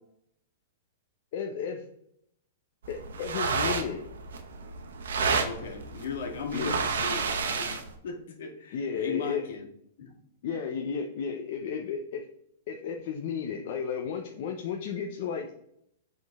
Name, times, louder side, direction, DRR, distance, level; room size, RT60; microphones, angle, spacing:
voice 1, 1.3-1.8 2.9-4.0 6.5-6.8 8.7-9.4 10.4-12.2 12.7-15.5, left 6 dB, 40° left, 3 dB, 0.6 m, -33 dB
sound 1, 2.8-8.0, right 5 dB, 90° right, 0.9 m, -31 dB
voice 2, 5.4-9.7 10.0-10.1, left 5 dB, 60° left, 1 dB, 1.6 m, -37 dB
7.6 x 3.8 x 3.5 m, 0.73 s
supercardioid pair, 170°, 0 cm